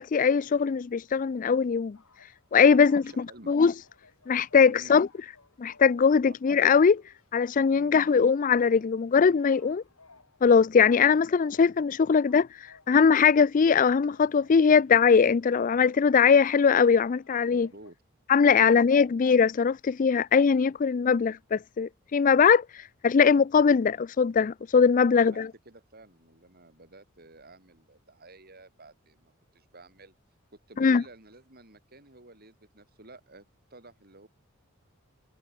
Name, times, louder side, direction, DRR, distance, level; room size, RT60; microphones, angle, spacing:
voice 1, 0.0-2.0 2.5-3.0 3.5-3.7 4.3-5.1 5.6-7.0 7.3-9.8 10.4-12.5 12.9-17.7 18.3-22.6 23.0-25.5 30.8-31.0, left 6 dB, 40° left, 0.4 m, -21 dB
sound 1, 1.8-17.9, left 3 dB, 90° left, 7.7 m, -61 dB
voice 2, 2.7-3.6 4.7-5.0 6.3-6.4 7.7-7.9 17.5-18.0 18.5-19.2 25.1-30.1 30.5-33.5 33.7-34.3, right 2 dB, 45° right, 7.5 m, -51 dB
head